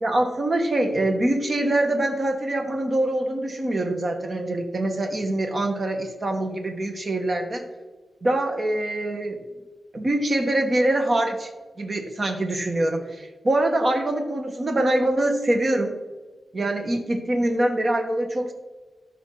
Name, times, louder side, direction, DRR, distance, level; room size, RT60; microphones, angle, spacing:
voice 1, 0.0-7.7 8.2-9.4 9.9-11.5 11.8-16.0 16.5-18.5, right 1 dB, 35° right, 4 dB, 1.3 m, -24 dB
13.5 x 5.2 x 3.8 m, 1.3 s
wide cardioid pair, 160°, 0 cm